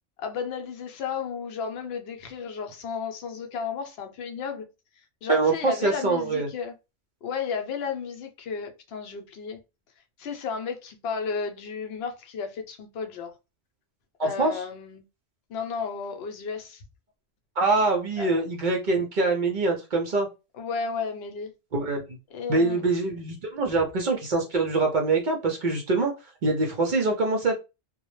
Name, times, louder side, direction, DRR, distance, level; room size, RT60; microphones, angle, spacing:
voice 1, 0.2-4.7 5.2-6.7 7.2-9.6 10.2-13.3 14.2-15.0 15.5-16.8 18.2-18.3 20.5-21.5 22.3-22.8, left 6 dB, 65° left, 0.7 m, -33 dB
voice 2, 5.3-6.5 14.2-14.6 17.6-20.3 21.7-22.0 22.5-26.1 26.4-27.6, right 3 dB, 55° right, 0.5 m, -24 dB
2.1 x 2.0 x 3.0 m
omnidirectional pair, 1.2 m